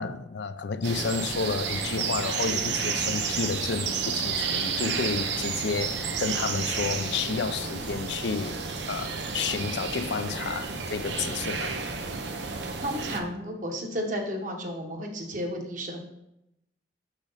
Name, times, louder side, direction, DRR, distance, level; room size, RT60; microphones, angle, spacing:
voice 1, 0.0-8.6 8.9-11.8, left 5 dB, 85° left, 0.5 m, -31 dB
sound 1, 0.8-13.2, right 5 dB, 90° right, 0.8 m, -31 dB
voice 2, 12.8-16.0, equal, 45° right, 1.3 m, -32 dB
6.6 x 6.1 x 4.0 m
head